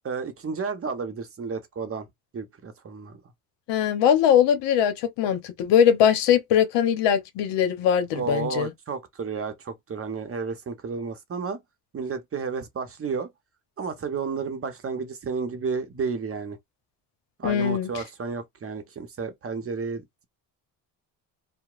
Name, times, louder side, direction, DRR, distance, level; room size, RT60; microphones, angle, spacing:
voice 1, 0.0-2.1 2.3-3.2 8.1-11.6 11.9-13.3 13.8-16.6 17.4-20.2, right 5 dB, 35° right, 0.7 m, -32 dB
voice 2, 3.7-8.7 17.4-18.0, left 9 dB, 80° left, 0.8 m, -21 dB
2.8 x 2.0 x 2.4 m
supercardioid pair, 70°, 42 cm